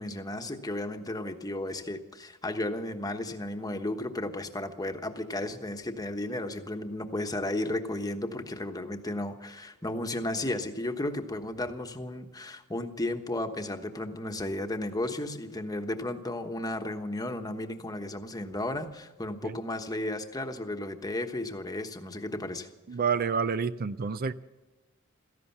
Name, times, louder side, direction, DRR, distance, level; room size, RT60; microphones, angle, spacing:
voice 1, 0.0-22.7, left 1 dB, 20° left, 6 dB, 1.2 m, -34 dB
voice 2, 22.9-24.3, right 6 dB, 45° right, 14 dB, 0.5 m, -28 dB
16.5 x 14.5 x 5.9 m, 1.2 s
head